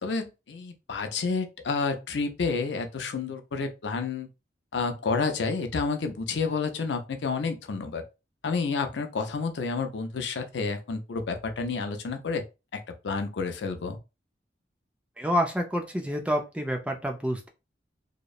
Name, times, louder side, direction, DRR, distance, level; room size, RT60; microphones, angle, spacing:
voice 1, 0.0-4.3 4.7-8.0 8.4-12.4 12.7-14.0, left 4 dB, 85° left, 0.5 m, -30 dB
voice 2, 15.2-17.5, equal, 5° right, 0.3 m, -28 dB
2.8 x 2.0 x 2.3 m
head